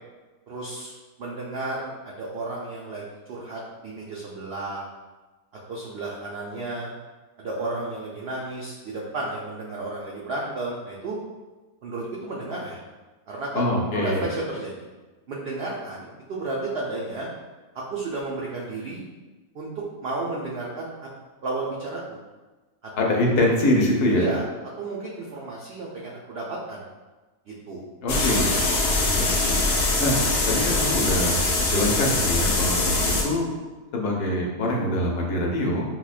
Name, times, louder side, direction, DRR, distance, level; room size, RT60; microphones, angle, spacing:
voice 1, 0.5-0.9 1.2-4.8 5.7-6.9 7.4-11.2 11.8-12.8 13.3-13.7 13.9-14.9 15.3-17.3 17.7-19.0 19.5-19.7 20.0-21.1 21.4-22.2 22.8-22.9 24.2-24.4 24.8-26.8 27.5-27.8, right 2 dB, 80° right, -4 dB, 0.5 m, -32 dB
voice 2, 13.5-14.2 23.0-24.3 28.0-28.6 29.1-29.7 30.0-30.2 30.5-31.4 31.7-33.5 33.9-35.8, left 1 dB, 80° left, -1 dB, 1.3 m, -24 dB
sound 1, 28.1-33.2, left 2 dB, 60° left, 0.7 m, -23 dB
5.9 x 2.1 x 2.4 m, 1.2 s
omnidirectional pair, 1.7 m